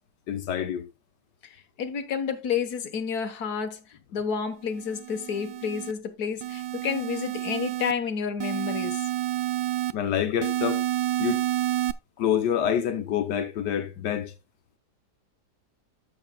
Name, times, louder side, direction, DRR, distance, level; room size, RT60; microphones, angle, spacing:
voice 1, 0.3-0.9 9.9-10.8 11.2-11.4 12.2-14.3, left 9 dB, 90° left, 1.6 m, -27 dB
voice 2, 1.4-9.0, left 6 dB, 65° left, 1.7 m, -30 dB
sound 1, 4.8-5.9 6.4-7.9 8.4-9.9 10.4-11.9, right 13 dB, 90° right, 1.2 m, -29 dB
13.5 x 6.8 x 2.3 m
omnidirectional pair, 1.8 m